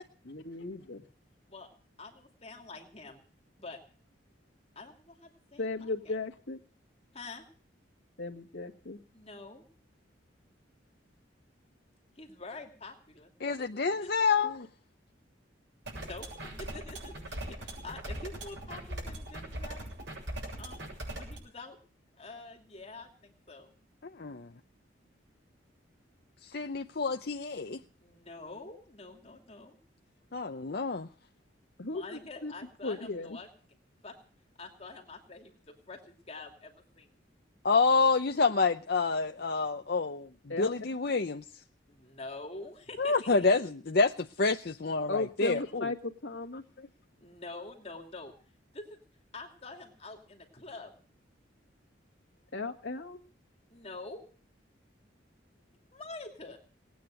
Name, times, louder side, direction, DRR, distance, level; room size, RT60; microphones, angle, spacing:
voice 1, 0.2-1.0 5.6-6.6 8.2-9.0 14.4-14.7 31.8-32.5 32.8-33.4 40.5-40.7 45.1-46.7 52.5-53.2, left 3 dB, 80° left, 1.9 m, -36 dB
voice 2, 2.0-3.2 3.6-3.8 4.7-5.7 6.1-6.2 7.1-7.4 9.1-9.6 12.2-13.3 13.7-14.3 15.9-16.3 16.6-19.9 20.6-21.8 22.2-23.7 28.0-29.8 31.9-33.5 34.0-34.2 34.6-37.1 41.9-43.5 47.2-48.3 48.7-49.0 49.3-50.9 53.7-54.2 55.9-56.6, left 3 dB, 35° left, 2.7 m, -46 dB
voice 3, 13.4-14.6 24.1-24.5 26.4-27.8 30.3-31.1 37.6-40.3 40.6-41.4 43.0-45.1 45.4-45.6, left 4 dB, 55° left, 0.7 m, -28 dB
sound 1, 15.9-21.4, right 1 dB, 75° right, 7.5 m, -40 dB
19.0 x 9.3 x 7.6 m
head